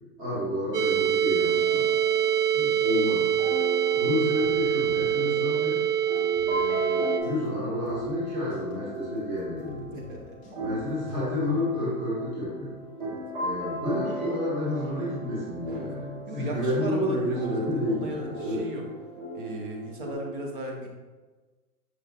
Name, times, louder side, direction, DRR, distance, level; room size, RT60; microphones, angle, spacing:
voice 1, 0.2-1.9 2.5-3.3 3.9-5.8 6.4-9.9 10.5-12.7 13.4-18.6, left 1 dB, 20° right, -8 dB, 1.2 m, -30 dB
sound 1, 0.7-7.2, right 9 dB, 80° right, 0.6 m, -25 dB
sound 2, 1.4-20.1, equal, 60° right, 1.2 m, -37 dB
sound 3, 4.4-5.4 5.7-5.8 6.2-7.5 7.9-11.2, left 1 dB, 20° left, 0.6 m, -49 dB
voice 2, 9.9-10.4 13.0-13.2 15.7-15.9 16.3-18.9 19.3-20.9, right 1 dB, 35° right, 1 dB, 0.6 m, -37 dB
5.7 x 3.1 x 2.3 m, 1.3 s
hypercardioid pair, 160°, 46 cm